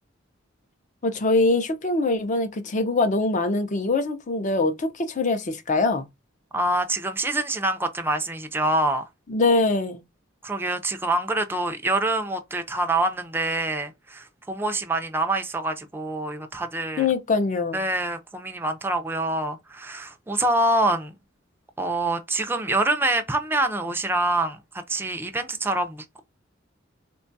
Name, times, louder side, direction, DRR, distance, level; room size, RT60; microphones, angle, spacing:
voice 1, 1.0-6.1 9.3-10.0 17.0-17.8, left 3 dB, 40° left, 0.5 m, -23 dB
voice 2, 6.5-9.1 10.4-17.1 17.7-21.2 21.8-26.2, right 2 dB, 10° right, 0.4 m, -26 dB
3.7 x 2.3 x 2.6 m
head